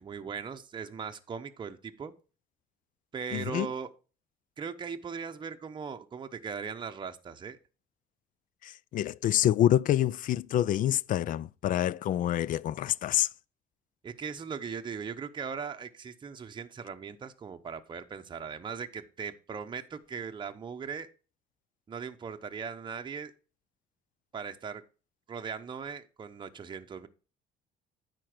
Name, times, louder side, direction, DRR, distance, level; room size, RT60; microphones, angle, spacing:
voice 1, 0.0-2.1 3.1-3.9 4.6-7.6 14.0-21.1 21.9-23.3 24.3-24.8 25.3-27.1, right 6 dB, 25° right, 0.8 m, -39 dB
voice 2, 3.3-3.7 8.6-13.3, left 12 dB, 50° left, 0.4 m, -27 dB
9.8 x 4.6 x 6.0 m
cardioid pair, 110°, 17 cm